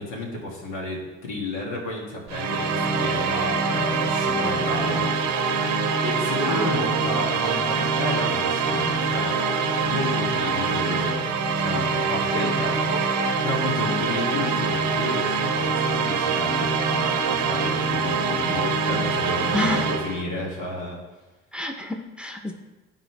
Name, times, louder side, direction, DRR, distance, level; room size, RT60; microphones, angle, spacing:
voice 1, 0.0-5.0 6.0-11.3 11.6-21.0, left 2 dB, 80° left, -3 dB, 2.3 m, -32 dB
sound 1, 2.3-20.2, right 4 dB, 75° right, 0.8 m, -24 dB
voice 2, 6.5-6.9 19.5-19.9 21.5-22.5, left 1 dB, 5° right, 3 dB, 0.9 m, -29 dB
9.3 x 4.0 x 4.7 m, 1.1 s
hypercardioid pair, 60°, 31 cm